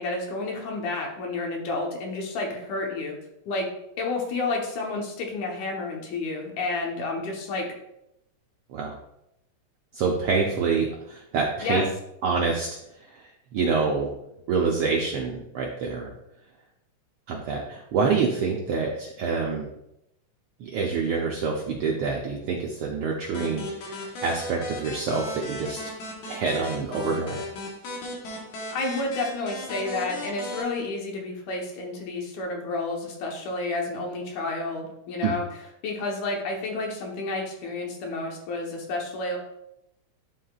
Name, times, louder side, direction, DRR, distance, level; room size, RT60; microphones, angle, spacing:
voice 1, 0.0-3.2 3.5-3.7 4.0-7.7 11.6-11.8 28.7-35.5 35.8-39.4, left 3 dB, 90° left, 1 dB, 2.5 m, -30 dB
voice 2, 9.9-11.8 12.2-12.7 13.0-14.1 14.5-16.1 17.3-19.7 20.6-25.8 26.3-27.4 35.2-35.3, right 5 dB, 80° right, -1 dB, 1.2 m, -26 dB
sound 1, 23.3-30.6, left 1 dB, 65° left, 2.2 m, -36 dB
10.5 x 3.7 x 2.4 m, 0.83 s
omnidirectional pair, 3.3 m